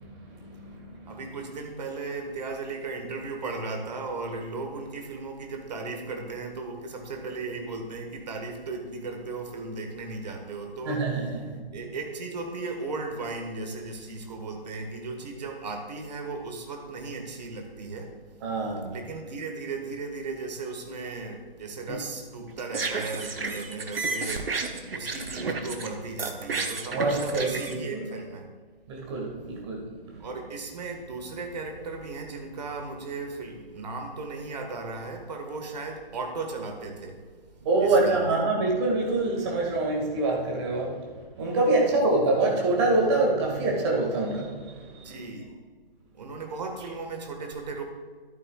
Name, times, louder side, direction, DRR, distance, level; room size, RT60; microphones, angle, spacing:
voice 1, 0.0-1.3 10.9-11.6 18.4-19.0 21.9-22.0 26.9-28.0 28.9-30.3 37.7-45.1, right 2 dB, 30° right, -1 dB, 2.0 m, -26 dB
voice 2, 1.1-11.1 11.7-18.2 18.9-28.5 30.2-37.2 37.5-38.4 41.8-42.3 45.0-45.6 46.1-47.8, right 3 dB, 45° right, 3 dB, 1.6 m, -36 dB
sound 1, 22.5-25.9 26.2-27.7, right 3 dB, 70° right, 1.1 m, -32 dB
13.0 x 10.5 x 2.4 m, 1.5 s
figure-of-eight pair, 140°, 30 cm